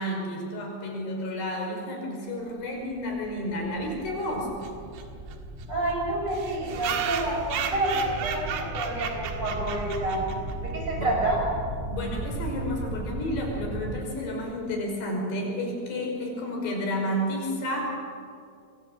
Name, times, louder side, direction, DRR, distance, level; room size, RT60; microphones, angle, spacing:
voice 1, 0.0-4.6 11.0-11.1 11.9-17.9, equal, 90° left, 0 dB, 7.6 m, -31 dB
sound 1, 2.6-14.0, right 1 dB, 15° right, 2.5 m, -37 dB
sound 2, 4.6-4.7 5.0-5.1 5.3-5.4 5.6-5.7 6.3-10.5, right 8 dB, 85° right, 3.8 m, -34 dB
voice 2, 5.7-10.3 10.6-11.4, right 2 dB, 30° right, -1 dB, 7.6 m, -28 dB
27.0 x 23.0 x 7.6 m, 2.3 s
omnidirectional pair, 4.6 m